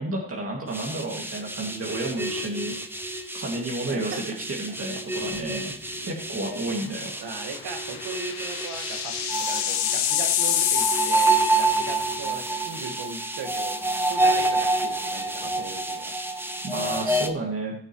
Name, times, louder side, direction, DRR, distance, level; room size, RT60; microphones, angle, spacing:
voice 1, 0.0-2.7 3.3-5.7 6.1-7.1 16.6-17.7, right 2 dB, 35° right, -2 dB, 2.3 m, -31 dB
sound 1, 0.7-17.3, right 2 dB, 5° right, 1.2 m, -28 dB
voice 2, 3.5-4.2 4.7-5.0 7.2-13.8 14.0-16.1, right 4 dB, 75° right, 6 dB, 1.8 m, -38 dB
sound 2, 5.3-5.7 6.0-6.1 7.6-12.2, left 11 dB, 75° left, 1.0 m, -27 dB
16.5 x 6.6 x 3.1 m, 0.62 s
cardioid pair, 75°, 40 cm